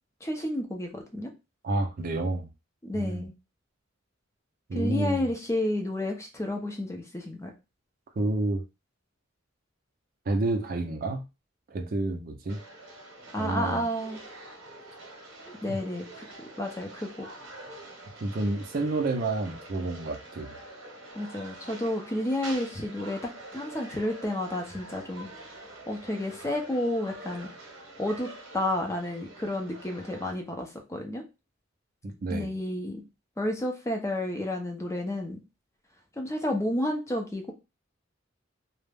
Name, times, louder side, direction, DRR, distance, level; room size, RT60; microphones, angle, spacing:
voice 1, 0.2-1.3 2.8-3.3 4.7-7.5 13.3-14.2 15.5-17.3 21.1-27.5 28.0-31.2 32.3-33.0 33.4-35.4 36.2-37.5, left 1 dB, 15° left, 0.5 m, -31 dB
voice 2, 1.6-2.5 2.9-3.3 4.7-5.3 8.2-8.6 10.3-11.2 11.7-12.6 13.4-13.8 15.7-15.8 18.2-20.6 32.0-32.5, right 2 dB, 50° right, 0.4 m, -29 dB
sound 1, 12.5-30.3, right 2 dB, 80° right, 0.8 m, -46 dB
2.3 x 2.0 x 3.2 m
head